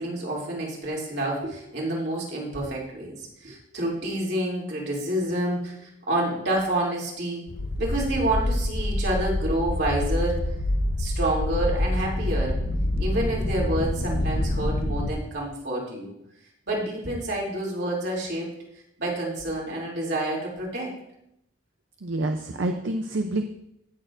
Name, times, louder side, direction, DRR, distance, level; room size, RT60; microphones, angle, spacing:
voice 1, 0.0-7.5 7.8-10.5 11.0-12.6 13.0-16.1 16.7-18.5 19.0-20.9, right 1 dB, 60° right, -4 dB, 2.8 m, -28 dB
sound 1, 7.5-15.1, left 1 dB, 50° left, 0.8 m, -26 dB
voice 2, 22.0-23.4, right 2 dB, 75° right, 5 dB, 0.6 m, -27 dB
16.5 x 6.6 x 2.5 m, 0.79 s
head